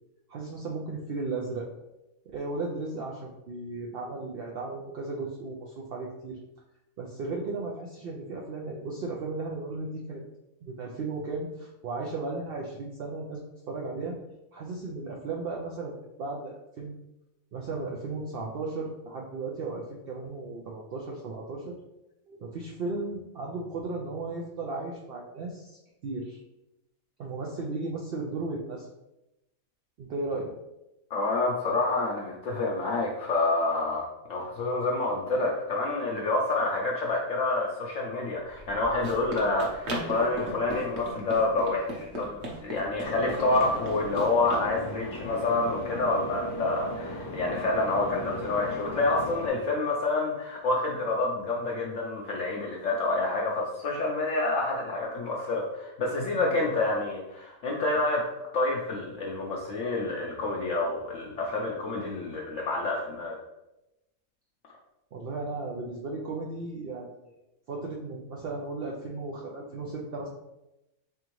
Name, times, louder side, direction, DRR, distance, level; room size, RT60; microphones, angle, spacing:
voice 1, 0.3-1.7 2.3-6.4 7.0-10.2 10.6-14.2 14.5-16.9 17.5-21.8 22.3-26.4 27.2-28.9 30.0-30.5 47.9-48.3 65.1-67.1 67.7-70.3, right 3 dB, 80° right, -2 dB, 0.5 m, -35 dB
voice 2, 31.1-58.3 58.5-63.4, left 2 dB, 65° left, -2 dB, 0.9 m, -28 dB
Run, 38.5-44.7, equal, 55° right, 1.1 m, -37 dB
sound 1, 43.0-49.5, equal, 85° left, 1.2 m, -37 dB
3.7 x 3.4 x 3.0 m, 0.92 s
omnidirectional pair, 1.5 m